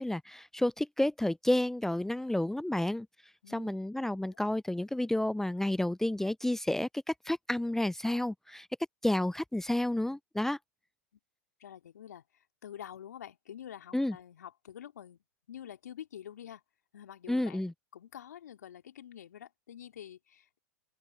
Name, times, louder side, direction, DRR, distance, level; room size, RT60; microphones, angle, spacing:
voice 1, 0.0-3.1 3.5-8.7 9.0-10.6 13.9-14.1 17.3-17.7, left 1 dB, 5° left, 0.5 m, -30 dB
voice 2, 3.4-3.8 4.1-4.5 11.6-15.2 15.5-16.6 16.9-20.6, left 10 dB, 75° left, 2.6 m, -48 dB
open air
hypercardioid pair, 90°, 9 cm